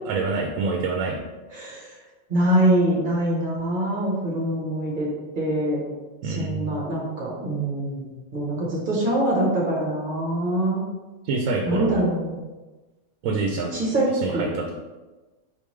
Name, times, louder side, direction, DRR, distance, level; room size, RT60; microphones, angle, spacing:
voice 1, 0.1-1.2 6.2-6.8 11.2-12.0 13.2-13.7 14.2-14.7, right 4 dB, 90° right, 1 dB, 1.0 m, -26 dB
voice 2, 1.5-1.9 2.3-5.1 5.3-5.8 6.2-10.8 11.6-12.4 13.7-14.4, right 1 dB, 40° right, -4 dB, 1.4 m, -24 dB
4.4 x 3.6 x 3.2 m, 1.2 s
omnidirectional pair, 1.4 m